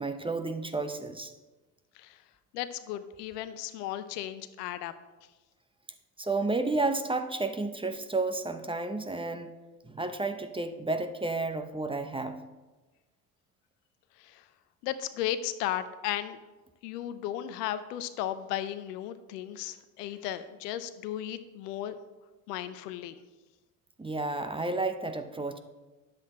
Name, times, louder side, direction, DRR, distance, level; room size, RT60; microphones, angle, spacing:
voice 1, 0.0-1.3 6.2-9.5 9.8-12.4 24.0-25.6, right 3 dB, 10° right, 8 dB, 0.8 m, -31 dB
voice 2, 2.5-4.9 14.2-14.4 14.8-16.4 16.8-22.0 22.5-23.2, left 12 dB, 80° left, 12 dB, 0.8 m, -35 dB
9.8 x 7.6 x 4.3 m, 1.1 s
hypercardioid pair, 70°, 48 cm